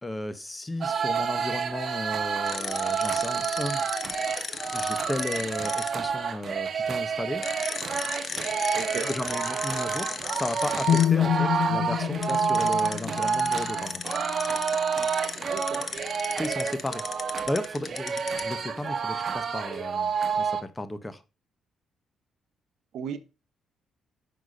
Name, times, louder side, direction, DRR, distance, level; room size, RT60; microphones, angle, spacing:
voice 1, 0.0-3.8 4.7-7.4 9.0-14.0 16.4-21.2, left 1 dB, 15° left, 1.2 m, -34 dB
sound 1, 0.8-20.6, right 6 dB, 45° right, 1.3 m, -29 dB
sound 2, 2.5-5.9 7.4-11.1 12.2-18.5, left 5 dB, 45° left, 1.2 m, -35 dB
voice 2, 8.7-9.1 15.4-15.8 22.9-23.2, right 7 dB, 75° right, 1.3 m, -34 dB
sound 3, 10.9-14.8, left 10 dB, 75° left, 0.5 m, -28 dB
10.0 x 6.2 x 4.1 m
cardioid pair, 90°, 0 cm